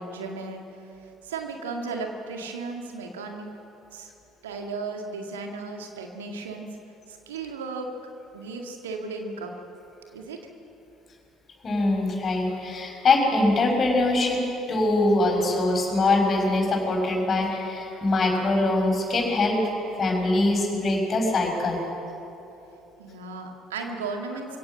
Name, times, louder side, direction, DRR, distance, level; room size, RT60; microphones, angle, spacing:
voice 1, 0.0-3.5 3.9-4.1 4.4-6.7 7.1-7.9 8.3-9.5 10.1-10.4 23.0-24.6, right 4 dB, 75° right, 3 dB, 2.0 m, -35 dB
voice 2, 11.6-14.4 14.7-19.6 20.0-21.8, left 2 dB, 40° left, 1 dB, 6.2 m, -23 dB
23.5 x 17.0 x 7.7 m, 2.9 s
figure-of-eight pair, 55°, 0 cm